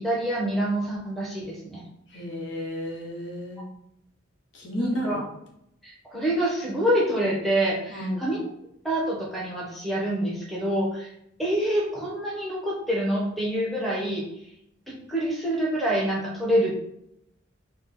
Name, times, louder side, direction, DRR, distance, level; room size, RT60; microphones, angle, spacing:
voice 1, 0.0-1.8 4.8-5.2 5.8-8.4 8.8-11.1 11.4-14.2 14.9-16.7, right 1 dB, ahead, -6 dB, 0.9 m, -26 dB
voice 2, 2.1-3.7 4.5-5.2 7.9-8.3, equal, 65° left, -2 dB, 1.1 m, -32 dB
4.3 x 2.2 x 4.2 m, 0.76 s
head